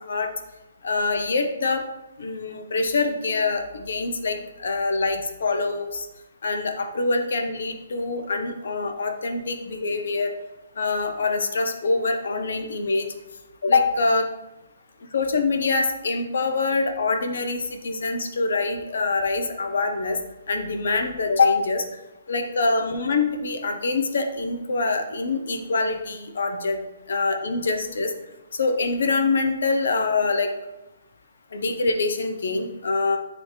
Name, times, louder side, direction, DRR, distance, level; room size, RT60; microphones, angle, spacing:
voice 1, 0.8-1.8 2.2-6.1 6.4-10.3 10.8-13.0 13.6-14.3 15.1-20.2 20.5-21.8 22.3-26.8 27.1-28.1 28.6-30.5 31.5-33.2, left 3 dB, 65° left, 5 dB, 0.8 m, -24 dB
9.1 x 3.1 x 3.4 m, 0.97 s
hypercardioid pair, 175°, 0 cm